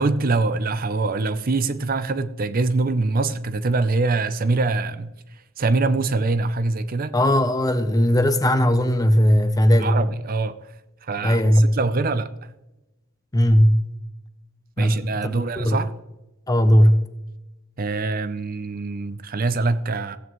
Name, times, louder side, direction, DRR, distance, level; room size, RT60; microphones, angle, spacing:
voice 1, 0.0-5.1 5.6-7.1 9.8-10.6 11.0-12.3 14.8-15.9 17.8-20.2, right 3 dB, 40° right, 0.5 m, -24 dB
voice 2, 7.1-10.0 11.2-11.6 13.3-13.9 14.8-15.8 16.5-17.0, equal, 15° left, 0.6 m, -18 dB
15.0 x 9.2 x 3.1 m
head